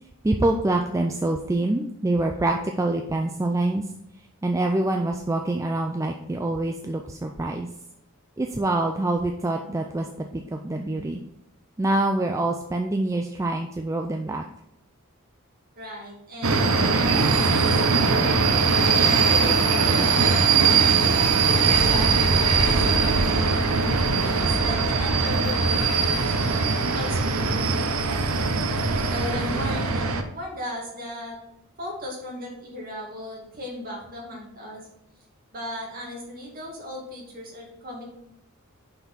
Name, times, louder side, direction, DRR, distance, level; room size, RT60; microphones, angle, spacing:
voice 1, 0.2-3.9 4.4-7.7 8.4-10.1 10.3-11.2 11.8-14.4, right 2 dB, 15° right, 3 dB, 0.3 m, -25 dB
voice 2, 15.8-18.3 18.9-21.0 21.4-23.2 23.4-23.7 24.2-28.5 29.1-31.4 31.8-34.8 35.5-38.0, left 1 dB, 45° right, -2 dB, 2.2 m, -37 dB
sound 1, 16.4-30.2, right 4 dB, 85° right, 0.8 m, -21 dB
5.9 x 5.6 x 4.2 m, 0.81 s
head